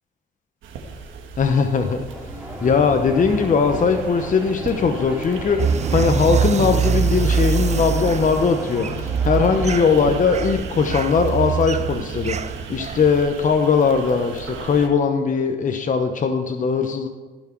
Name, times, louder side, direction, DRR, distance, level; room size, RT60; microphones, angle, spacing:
sound 1, 0.6-14.9, right 5 dB, 80° right, 1.5 m, -37 dB
voice 1, 1.4-2.1 2.6-5.6 5.9-12.4 12.7-17.1, left 5 dB, 40° left, 5 dB, 0.9 m, -20 dB
sound 2, 2.1-9.9, equal, 5° right, 2.5 m, -34 dB
sound 3, 5.6-13.2, right 6 dB, 35° right, 0.5 m, -24 dB
14.5 x 6.1 x 4.6 m, 1.3 s
cardioid pair, 90°, 20 cm